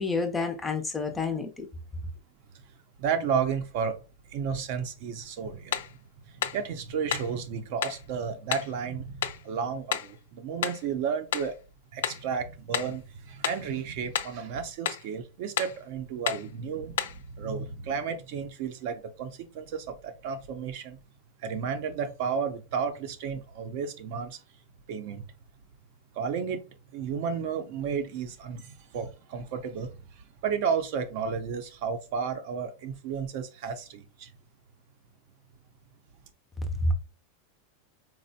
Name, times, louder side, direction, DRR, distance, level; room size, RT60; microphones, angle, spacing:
voice 1, 0.0-1.7 36.8-36.9, left 2 dB, 10° left, 0.5 m, -28 dB
voice 2, 3.0-4.0 4.3-5.8 6.3-11.6 11.9-21.0 21.4-24.4 24.9-25.2 26.1-26.6 26.9-34.3, right 6 dB, 50° right, 0.6 m, -32 dB
sound 1, 5.7-6.0 6.4-6.6 7.1-7.4 7.8-8.0 8.5-8.7 9.2-9.4 9.9-10.2 10.6-10.9 11.3-11.6 12.0-12.3 12.7-13.0 13.4-13.7 14.1-14.4 14.9-15.1 15.6-15.8 16.3-16.5 17.0-17.2, left 10 dB, 85° left, 0.3 m, -31 dB
4.2 x 2.1 x 2.7 m
supercardioid pair, 160°, 0 cm